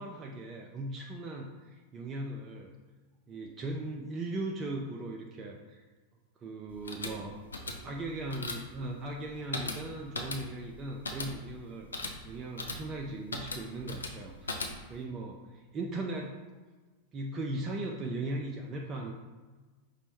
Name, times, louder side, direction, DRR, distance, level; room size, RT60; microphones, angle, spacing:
voice 1, 0.0-2.7 3.3-5.8 6.4-7.4 7.8-11.9 12.2-16.4 17.1-19.1, right 2 dB, 25° right, 1 dB, 0.3 m, -38 dB
sound 1, 6.7-15.1, left 2 dB, 75° left, 0.4 m, -40 dB
5.0 x 2.1 x 3.1 m, 1.3 s
figure-of-eight pair, 90°, 0 cm